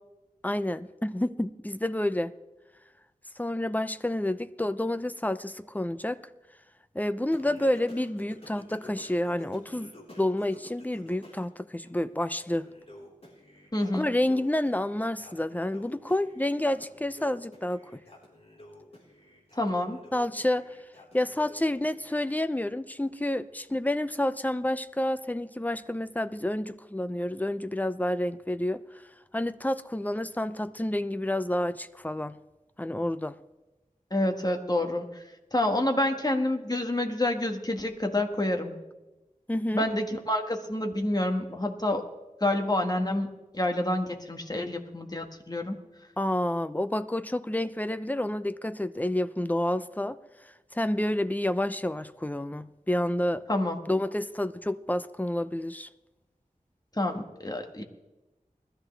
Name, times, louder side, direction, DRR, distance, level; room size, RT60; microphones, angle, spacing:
voice 1, 0.4-2.3 3.4-6.2 6.9-12.7 13.9-18.0 20.1-20.7 21.1-28.8 29.3-32.4 32.8-33.4 39.5-39.9 46.2-50.2 50.7-53.4 53.9-55.9, left 1 dB, 10° left, 13 dB, 0.6 m, -29 dB
Singing, 7.3-11.4 11.8-22.2, left 1 dB, 45° left, 4.2 m, -51 dB
voice 2, 13.7-14.1 19.6-20.0 34.1-35.2 35.5-38.8 39.7-42.0 42.4-45.8 53.5-53.8 57.0-57.8, left 1 dB, 30° left, 4 dB, 1.7 m, -28 dB
20.5 x 13.5 x 3.3 m, 1.0 s
wide cardioid pair, 65°, 14 cm